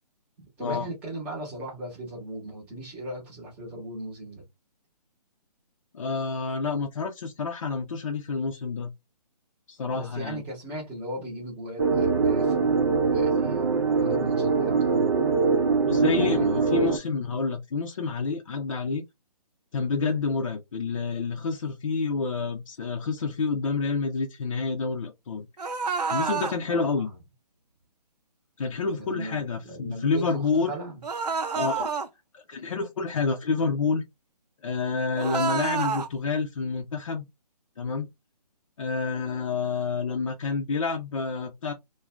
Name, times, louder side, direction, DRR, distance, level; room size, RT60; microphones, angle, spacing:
voice 1, 0.6-4.4 9.9-15.2 15.8-16.7 26.6-27.2 29.0-31.0, right 1 dB, 5° right, 0.8 m, -38 dB
voice 2, 5.9-8.9 9.7-10.4 15.9-19.0 19.7-25.5 26.1-27.1 28.6-30.7 31.5-31.9 32.3-34.0 34.6-37.3 37.8-38.1 38.8-41.7, left 4 dB, 50° left, 0.6 m, -28 dB
sound 1, 11.8-17.0, right 5 dB, 40° right, 0.5 m, -23 dB
scream and death, 25.6-26.6 31.0-32.1 35.2-36.1, right 5 dB, 70° right, 0.7 m, -28 dB
2.5 x 2.3 x 3.1 m
hypercardioid pair, 165°, 21 cm